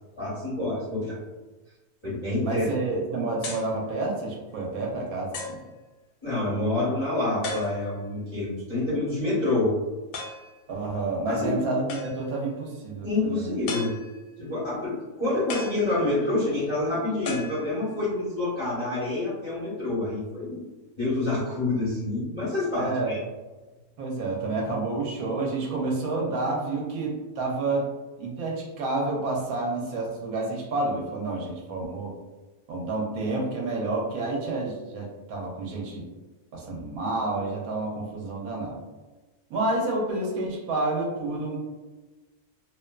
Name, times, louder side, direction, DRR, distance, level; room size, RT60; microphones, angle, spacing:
voice 1, 0.1-1.2 2.0-2.7 6.2-9.7 11.3-11.5 13.0-13.9 14.4-20.7 20.9-23.2, left 2 dB, 25° left, -10 dB, 0.6 m, -27 dB
voice 2, 2.4-5.6 10.7-13.6 22.8-23.1 24.0-27.9 28.2-32.2 32.7-36.1 36.5-38.8 39.5-41.6, right 2 dB, 75° right, -2 dB, 1.0 m, -29 dB
sound 1, 3.4-3.8 4.5-4.6 5.3-5.7 7.4-8.1 10.1-10.6 11.9-12.4 13.7-14.4 15.5-16.4 17.3-18.1, left 3 dB, 90° left, 1.1 m, -36 dB
2.6 x 2.2 x 2.2 m, 1.2 s
omnidirectional pair, 1.6 m